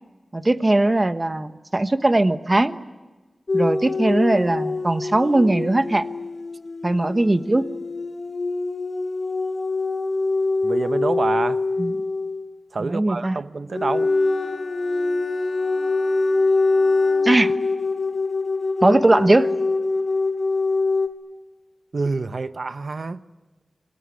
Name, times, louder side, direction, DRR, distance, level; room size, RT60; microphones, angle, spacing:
voice 1, 0.3-2.8 3.5-6.1 6.8-7.6 11.8-11.9 12.8-13.4 17.2-17.5 18.8-19.5, right 2 dB, 30° right, 11 dB, 1.1 m, -19 dB
sound 1, 3.5-12.5 13.7-21.1, left 3 dB, 60° left, 2.3 m, -24 dB
voice 2, 10.6-11.6 12.7-14.1 21.9-23.2, right 3 dB, 65° right, 12 dB, 0.9 m, -26 dB
Bowed string instrument, 13.7-18.2, left 3 dB, 85° left, 4.2 m, -40 dB
27.5 x 20.5 x 9.7 m, 1.2 s
wide cardioid pair, 90°, 0 cm